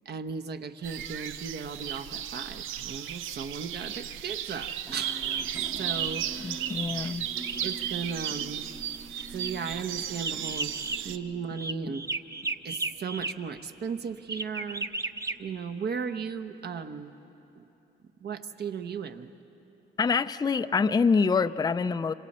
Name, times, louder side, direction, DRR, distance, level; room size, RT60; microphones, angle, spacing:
voice 1, 0.0-5.3 5.8-6.7 7.6-8.7 9.3-10.7 11.0-12.0 12.6-14.9 15.4-17.1 17.6-17.7 18.2-19.3, right 6 dB, 55° right, 8 dB, 1.0 m, -36 dB
sound 1, 0.8-11.2, right 10 dB, 90° right, 0.6 m, -35 dB
sound 2, 4.9-13.3 14.3-15.3, right 2 dB, 15° right, 0.7 m, -37 dB
voice 2, 6.4-7.3 20.0-22.1, left 5 dB, 20° left, 11 dB, 0.4 m, -25 dB
27.0 x 26.5 x 4.3 m, 3.0 s
cardioid pair, 90°, 20 cm